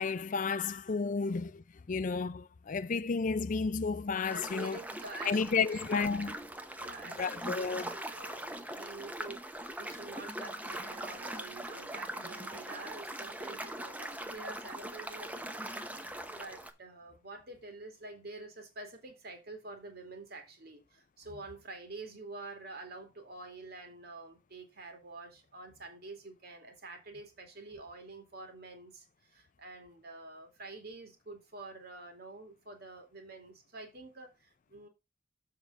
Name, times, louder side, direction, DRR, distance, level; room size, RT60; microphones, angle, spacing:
voice 1, 0.0-4.8 5.2-6.4 7.2-7.9, left 5 dB, 45° left, 0.4 m, -32 dB
sound 1, 4.2-16.7, right 1 dB, 10° right, 0.8 m, -41 dB
voice 2, 4.3-5.8 6.8-15.6 15.9-34.9, right 2 dB, 55° right, 2.4 m, -48 dB
7.2 x 4.8 x 5.4 m
head